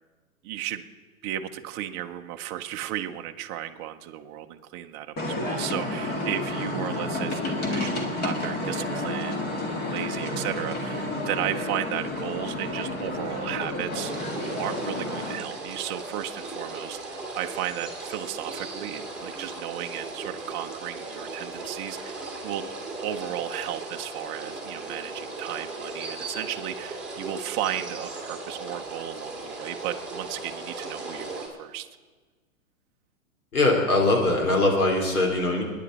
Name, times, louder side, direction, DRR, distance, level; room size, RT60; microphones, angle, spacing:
voice 1, 0.4-0.8 1.2-14.1 14.6-22.6 23.0-31.9, right 12 dB, 25° right, 5 dB, 0.7 m, -34 dB
sound 1, 5.2-15.4, left 1 dB, 25° left, 2.0 m, -30 dB
sound 2, 13.9-31.5, right 3 dB, ahead, 2.7 m, -37 dB
voice 2, 33.5-35.6, left 2 dB, 90° left, 1 dB, 3.9 m, -22 dB
28.5 x 10.0 x 4.1 m, 1.4 s
hypercardioid pair, 130°, 43 cm